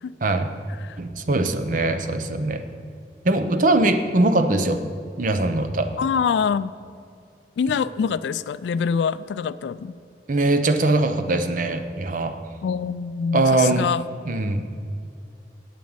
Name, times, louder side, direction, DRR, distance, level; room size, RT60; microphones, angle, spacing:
voice 1, 0.2-0.5 1.0-2.6 3.2-4.8 5.2-5.9 10.3-12.4 13.3-13.9 14.3-14.7, right 2 dB, 50° right, 8 dB, 0.7 m, -21 dB
voice 2, 6.0-6.7 7.6-10.0 12.6-14.0, left 6 dB, 75° left, 15 dB, 0.3 m, -25 dB
8.4 x 7.3 x 8.7 m, 2.3 s
head